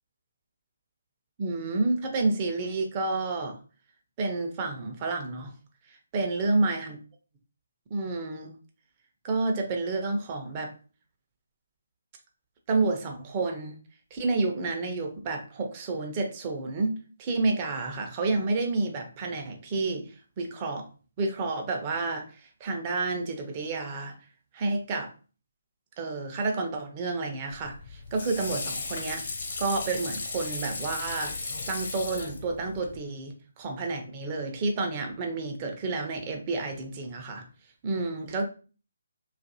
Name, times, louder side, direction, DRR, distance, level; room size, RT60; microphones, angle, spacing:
voice 1, 1.4-3.6 4.2-5.5 6.1-7.0 7.9-8.5 9.2-10.7 12.7-13.8 14.1-16.9 17.2-20.0 20.4-20.9 21.2-24.1 24.5-25.1 26.0-29.2 29.6-31.4 31.7-37.4 37.8-38.4, right 3 dB, 30° right, 3 dB, 0.5 m, -30 dB
Water / Sink (filling or washing), 27.5-33.0, left 3 dB, 50° left, 0.7 m, -36 dB
2.5 x 2.4 x 2.6 m, 0.37 s
figure-of-eight pair, 145°, 0 cm